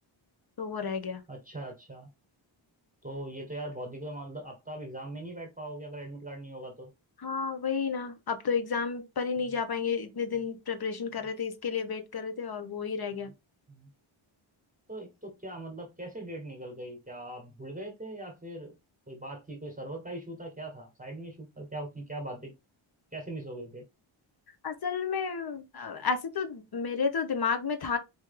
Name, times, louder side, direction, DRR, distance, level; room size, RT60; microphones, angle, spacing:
voice 1, 0.6-1.2 7.2-13.3 24.6-28.0, left 5 dB, 50° left, 1.0 m, -31 dB
voice 2, 1.3-2.1 3.0-6.9 9.4-9.5 13.1-13.3 13.7-13.9 14.9-18.8 19.1-22.5 23.1-23.8, right 1 dB, 15° right, 1.4 m, -41 dB
4.5 x 3.1 x 3.7 m
wide cardioid pair, 100°, 49 cm